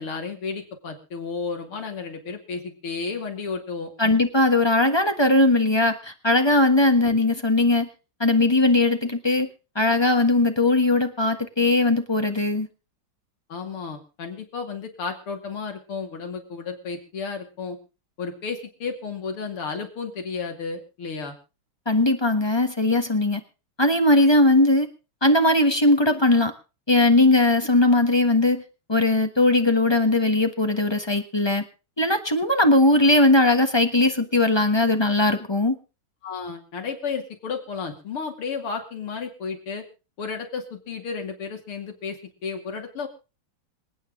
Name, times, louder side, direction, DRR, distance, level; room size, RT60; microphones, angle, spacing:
voice 1, 0.0-4.2 7.0-7.1 13.5-17.8 18.2-21.4 36.2-39.8 40.2-43.1, left 5 dB, 85° left, 4 dB, 3.4 m, -33 dB
voice 2, 4.0-7.9 8.2-9.5 9.7-12.7 21.9-23.4 23.8-24.9 25.2-26.5 26.9-28.6 28.9-31.6 32.0-35.8, left 2 dB, 15° left, 7 dB, 0.9 m, -19 dB
26.5 x 9.1 x 3.7 m, 0.32 s
omnidirectional pair, 2.3 m